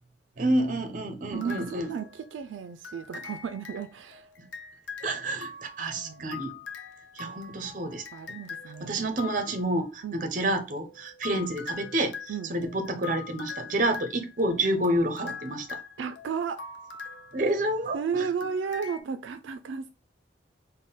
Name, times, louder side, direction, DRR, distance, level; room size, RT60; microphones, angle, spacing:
voice 1, 0.4-1.9 4.4-4.5 5.0-6.5 7.1-8.0 8.8-12.1 12.5-15.8 17.3-18.3, right 1 dB, 45° right, 0.6 m, -29 dB
sound 1, 1.3-2.4 2.8-9.8 10.8-18.0 18.4-19.0, left 5 dB, 75° left, 0.6 m, -43 dB
voice 2, 1.3-4.3 6.0-6.2 8.1-9.1 10.0-10.3 12.3-12.5 16.0-16.6 17.9-19.9, right 6 dB, 80° right, 0.3 m, -34 dB
3.6 x 2.1 x 3.9 m
head